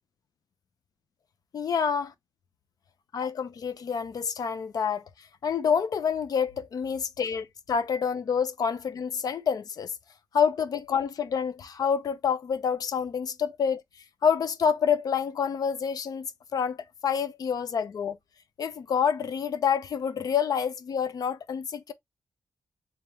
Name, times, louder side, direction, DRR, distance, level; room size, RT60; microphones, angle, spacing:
voice 1, 1.5-2.1 3.1-5.0 5.4-9.9 10.3-13.8 14.2-16.3 16.5-16.8 17.0-18.2 18.6-21.9, left 7 dB, 70° left, 0.6 m, -27 dB
3.5 x 3.4 x 2.9 m
wide cardioid pair, 145°, 7 cm